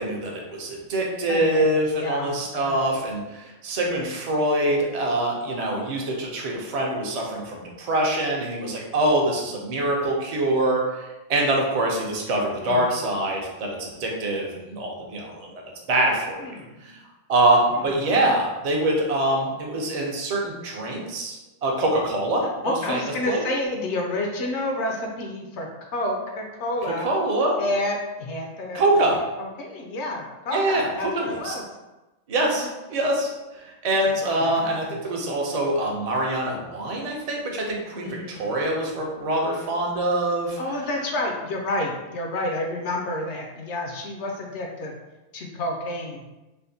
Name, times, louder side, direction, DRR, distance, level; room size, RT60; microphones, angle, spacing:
voice 1, 0.0-15.5 15.9-16.5 16.8-17.0 17.3-23.4 27.0-27.6 28.7-29.2 30.5-31.5 32.3-33.3 33.6-40.6, right 1 dB, 45° right, -1 dB, 0.5 m, -24 dB
voice 2, 1.3-1.6 1.9-2.8 12.6-13.0 16.4-16.8 17.8-18.0 22.6-27.1 27.6-31.6 32.5-32.7 33.9-34.1 34.4-35.0 37.9-39.0 40.6-45.0 45.3-46.2, left 1 dB, 70° left, 1 dB, 0.8 m, -30 dB
3.4 x 2.5 x 2.6 m, 1.1 s
omnidirectional pair, 1.3 m